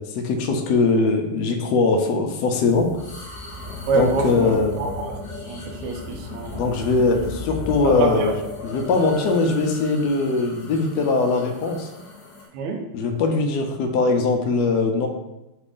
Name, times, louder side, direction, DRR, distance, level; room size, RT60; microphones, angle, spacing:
voice 1, 0.0-2.9 3.9-4.7 6.5-8.3 8.6-11.9 12.9-15.1, left 3 dB, 80° left, 3 dB, 0.9 m, -21 dB
sound 1, 2.7-12.5, left 3 dB, 50° left, 1.4 m, -35 dB
voice 2, 3.9-5.2 5.4-6.7 7.8-8.3 12.5-12.9, right 4 dB, 80° right, 3 dB, 1.4 m, -26 dB
4.9 x 2.5 x 3.5 m, 0.94 s
omnidirectional pair, 2.4 m